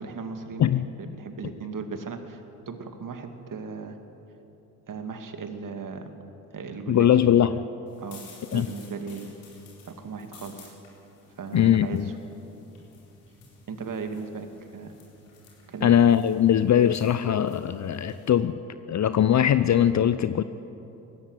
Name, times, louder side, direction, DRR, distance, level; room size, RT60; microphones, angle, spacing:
voice 1, 0.0-4.0 4.9-6.1 6.5-7.1 8.0-8.2 8.5-9.3 9.9-10.8 11.4-12.1 13.7-14.9 15.7-15.9, right 5 dB, 45° right, 6 dB, 2.4 m, -37 dB
voice 2, 6.9-7.6 8.5-8.7 11.5-12.1 15.8-18.6 18.9-20.4, left 10 dB, 40° left, 13 dB, 0.7 m, -21 dB
sound 1, 7.9-18.3, left 2 dB, 85° left, 4.1 m, -53 dB
18.5 x 15.0 x 9.3 m, 2.9 s
hypercardioid pair, 55°, 45 cm